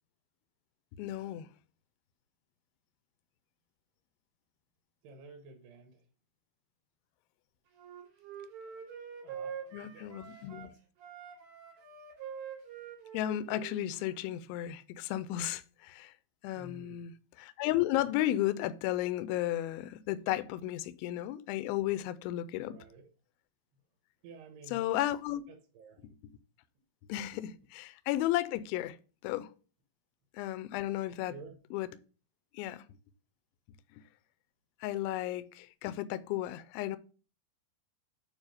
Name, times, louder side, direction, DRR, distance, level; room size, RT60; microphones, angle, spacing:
voice 1, 1.0-1.5 9.7-10.7 13.1-16.1 16.4-17.1 17.4-22.8 24.7-25.4 26.0-26.1 27.1-29.0 29.2-29.5 30.3-31.3 31.7-31.9 32.5-32.8 34.8-37.0, left 14 dB, 80° left, 2.3 m, -34 dB
voice 2, 5.0-6.0 8.6-8.8 9.2-10.8 16.5-17.0 22.6-23.1 24.2-24.9 25.5-26.1 31.3-31.6, right 2 dB, 85° right, 3.2 m, -52 dB
Wind instrument woodwind instrument, 7.8-10.7 11.0-14.4, right 7 dB, 55° right, 3.8 m, -45 dB
9.0 x 3.4 x 4.9 m
omnidirectional pair, 4.6 m